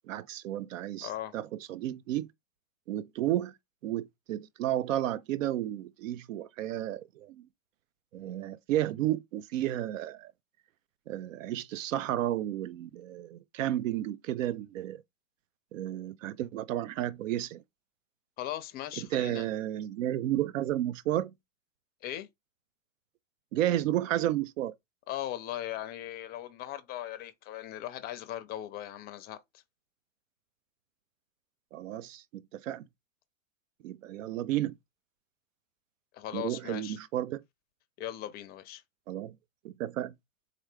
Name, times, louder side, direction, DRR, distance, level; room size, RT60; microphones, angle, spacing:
voice 1, 0.1-2.3 2.9-3.5 3.8-7.4 8.1-10.3 11.1-15.0 15.7-17.6 19.0-21.3 23.5-24.7 31.7-32.8 33.8-34.7 36.3-37.4 39.1-39.3 39.6-40.1, right 13 dB, 70° right, 0.6 m, -32 dB
voice 2, 1.0-1.3 18.4-19.5 22.0-22.3 25.1-29.4 36.1-37.0 38.0-38.8, left 13 dB, 25° left, 0.5 m, -38 dB
3.7 x 2.9 x 3.3 m
hypercardioid pair, 115°, 40 cm